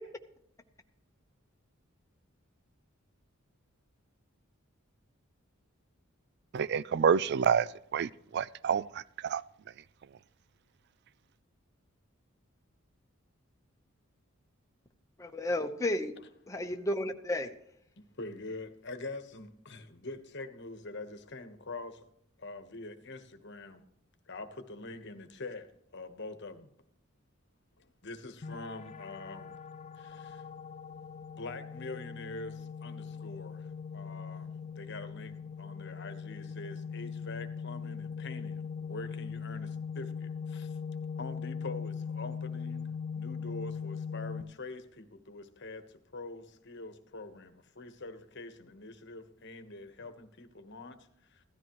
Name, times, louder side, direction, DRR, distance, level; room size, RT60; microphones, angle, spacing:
voice 1, 6.5-7.7 7.9-8.8 9.2-9.4, right 7 dB, 55° right, 0.3 m, -27 dB
voice 2, 15.2-16.1 16.5-17.6, left 1 dB, 15° left, 1.0 m, -32 dB
voice 3, 18.0-22.0 22.4-23.8 24.3-26.7 27.8-29.6 30.0-30.4 31.3-33.7 33.9-40.8 41.2-51.0 51.3-51.4, left 2 dB, 55° left, 1.2 m, -45 dB
sound 1, 28.4-44.4, left 6 dB, 30° left, 0.4 m, -40 dB
16.0 x 13.0 x 3.1 m
head